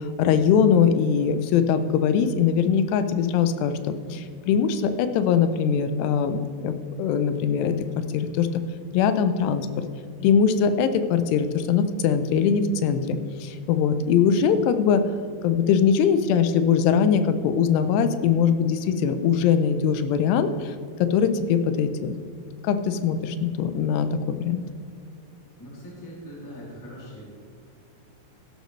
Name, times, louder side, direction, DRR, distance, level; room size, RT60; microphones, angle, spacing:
voice 1, 0.0-6.7 7.0-8.6 8.9-9.7 10.2-15.0 15.4-20.7 21.0-22.2 22.6-24.6, left 7 dB, 90° left, 10 dB, 2.8 m, -22 dB
voice 2, 25.6-27.2, equal, 5° left, -6 dB, 2.0 m, -41 dB
13.0 x 11.5 x 3.2 m, 2.4 s
omnidirectional pair, 4.7 m